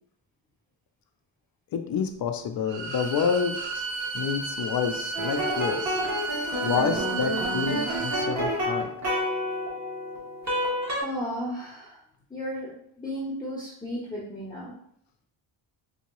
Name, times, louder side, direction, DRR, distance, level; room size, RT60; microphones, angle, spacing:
voice 1, 1.7-3.9 4.1-6.0 6.6-8.9, left 6 dB, 50° left, 6 dB, 0.5 m, -28 dB
Bowed string instrument, 2.6-8.3, right 3 dB, 70° right, 0.7 m, -33 dB
sound 1, 5.1-11.0, equal, 35° right, 1.0 m, -29 dB
voice 2, 11.0-12.0 12.3-12.7 13.0-14.7, equal, 10° left, -6 dB, 0.7 m, -34 dB
3.8 x 2.8 x 3.0 m, 0.69 s
wide cardioid pair, 140°, 47 cm